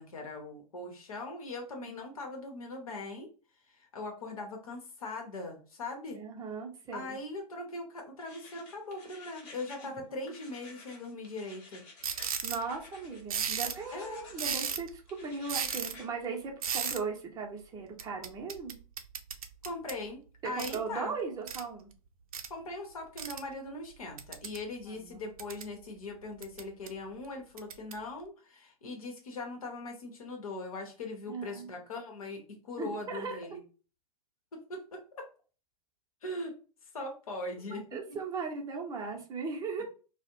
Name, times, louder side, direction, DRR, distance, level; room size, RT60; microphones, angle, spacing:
voice 1, 0.0-3.3 3.7-6.2 6.9-11.8 13.9-14.2 19.6-21.1 22.5-33.6 34.5-35.3 36.2-36.5 36.9-37.8 38.1-38.2, left 2 dB, 70° left, 2 dB, 0.9 m, -40 dB
voice 2, 6.1-7.2 9.8-9.9 12.4-18.7 20.4-21.9 24.9-25.3 31.3-31.7 32.8-33.6 37.7-39.8, right 4 dB, 20° right, 1 dB, 0.7 m, -38 dB
sound 1, 8.2-9.9 10.2-13.2 13.7-14.8 15.1-16.1, left 3 dB, 35° left, 1.2 m, -53 dB
sound 2, 12.0-12.6 13.3-13.8 14.3-14.9 15.5-15.9 16.6-17.0 18.0-20.0 20.6-20.8 21.5-21.6 22.3-22.5 23.2-23.4 24.2-24.6 25.1-25.7 26.4-26.9 27.6-27.9, right 7 dB, 70° right, 0.4 m, -35 dB
2.4 x 2.1 x 2.9 m, 0.36 s
figure-of-eight pair, 105°, 19 cm